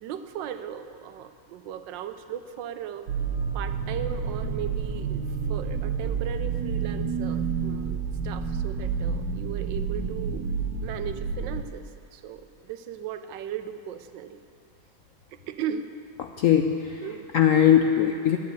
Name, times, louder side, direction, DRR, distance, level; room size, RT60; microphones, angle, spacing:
voice 1, 0.0-3.1 3.5-5.2 5.5-10.4 10.8-14.4 15.3-15.9 17.0-17.3, right 9 dB, 90° right, 10 dB, 1.4 m, -37 dB
sound 1, 3.1-11.6, right 6 dB, 70° right, 1.4 m, -29 dB
voice 2, 16.2-17.1 17.3-18.4, left 9 dB, 75° left, 5 dB, 0.7 m, -20 dB
10.5 x 9.4 x 8.4 m, 2.5 s
omnidirectional pair, 1.9 m